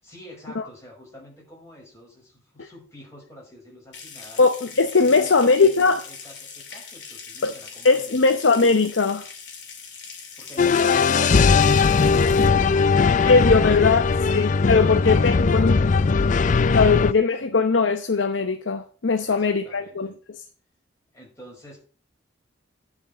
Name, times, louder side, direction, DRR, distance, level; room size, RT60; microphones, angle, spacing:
voice 1, 0.0-4.5 5.0-8.3 17.4-17.5 19.2-20.1 21.1-21.8, equal, 15° left, 6.0 m, -46 dB
Water tap faucet / Sink (filling or washing) / Trickle dribble, 3.9-12.5, left 6 dB, 65° left, 2.7 m, -41 dB
voice 2, 4.4-6.0 7.4-7.5 7.8-9.3 13.3-14.0 14.3-15.8 16.7-20.4, left 4 dB, 85° left, 0.8 m, -20 dB
sound 1, 10.6-17.1, left 5 dB, 40° left, 0.4 m, -19 dB
11.0 x 5.4 x 6.5 m
head